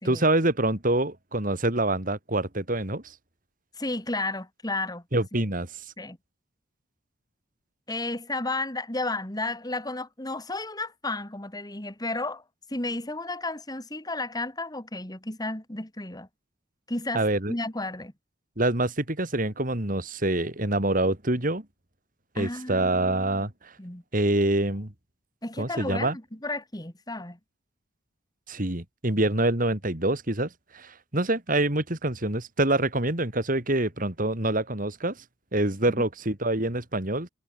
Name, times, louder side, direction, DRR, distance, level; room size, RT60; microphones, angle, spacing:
voice 1, 0.0-3.0 5.1-5.7 17.1-17.5 18.6-21.6 22.3-23.7 24.1-24.9 25.6-26.2 28.5-30.5 30.7-35.2 35.5-37.3, right 2 dB, 45° right, 3.0 m, -26 dB
voice 2, 3.8-5.0 6.0-6.2 7.9-12.4 12.7-16.3 16.9-18.1 22.4-23.5 23.8-24.0 25.4-27.4, left 2 dB, 20° left, 2.5 m, -33 dB
head